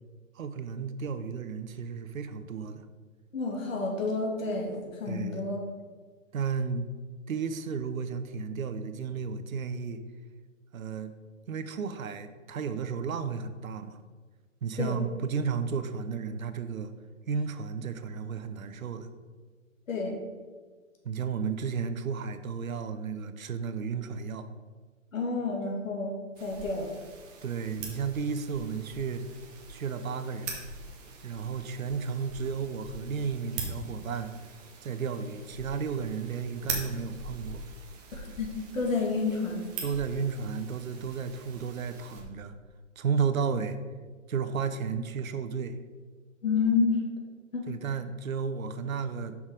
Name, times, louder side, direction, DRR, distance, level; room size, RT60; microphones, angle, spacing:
voice 1, 0.3-2.9 5.1-5.5 6.3-6.9 7.3-10.0 10.7-11.1 11.5-14.0 14.6-16.9 17.3-19.1 21.0-24.5 27.4-29.2 29.7-30.7 31.2-34.3 34.8-37.6 39.8-42.5 43.0-43.8 44.3-45.8 47.7-49.3, right 6 dB, 80° right, 10 dB, 0.8 m, -33 dB
voice 2, 3.3-5.6 14.8-15.0 19.9-20.1 25.1-26.1 26.4-26.9 38.1-39.6 46.4-47.0 47.5-47.6, left 4 dB, 75° left, -1 dB, 2.2 m, -29 dB
sound 1, 26.3-42.2, right 3 dB, 10° right, 0.5 m, -42 dB
6.1 x 5.6 x 4.9 m, 1.5 s
hypercardioid pair, 140°, 40 cm